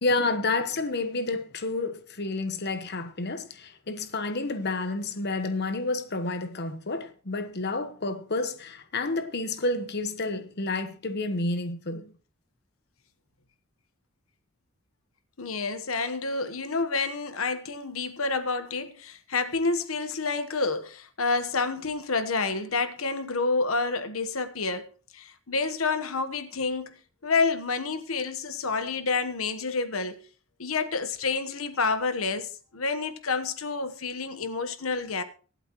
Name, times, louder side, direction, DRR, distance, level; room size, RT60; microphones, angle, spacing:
voice 1, 0.0-12.1, left 2 dB, 55° left, 1.2 m, -30 dB
voice 2, 15.4-30.2 30.6-35.2, left 4 dB, 90° left, 1.2 m, -29 dB
23.5 x 8.2 x 3.1 m
head